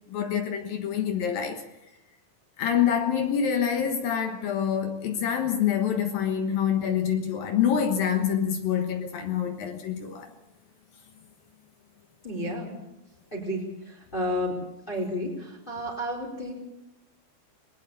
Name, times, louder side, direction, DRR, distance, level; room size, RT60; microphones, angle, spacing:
voice 1, 0.1-1.6 2.6-10.3, left 8 dB, 65° left, 2.9 m, -26 dB
voice 2, 12.2-12.7 13.3-13.6 14.1-14.6 14.9-16.5, equal, 10° left, 4.0 m, -31 dB
21.5 x 20.0 x 7.0 m
omnidirectional pair, 4.9 m